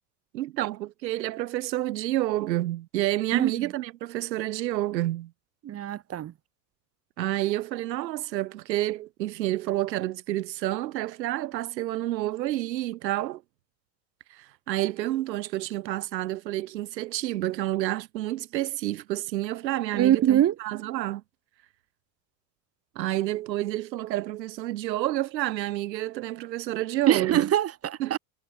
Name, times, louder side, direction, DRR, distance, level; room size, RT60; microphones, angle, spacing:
voice 1, 0.3-5.3 7.2-13.4 14.3-21.2 23.0-27.5 28.0-28.2, right 15 dB, 85° right, 2.1 m, -29 dB
voice 2, 5.6-6.3 19.9-20.5 27.1-28.2, right 11 dB, 30° right, 2.8 m, -23 dB
supercardioid pair, 135°, 49 cm